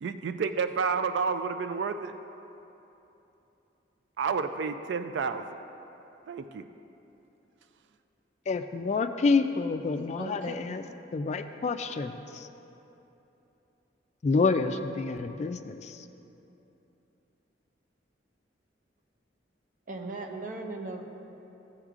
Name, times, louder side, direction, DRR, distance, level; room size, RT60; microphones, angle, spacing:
voice 1, 0.0-2.1 4.2-5.4 6.3-6.6, right 5 dB, 70° right, 9 dB, 0.3 m, -30 dB
voice 2, 8.5-10.8 11.1-12.5 14.2-16.1, left 4 dB, 40° left, 8 dB, 0.3 m, -28 dB
voice 3, 10.2-10.5 19.9-21.0, right 2 dB, 45° right, 1 dB, 0.7 m, -37 dB
14.5 x 7.9 x 2.5 m, 3.0 s
head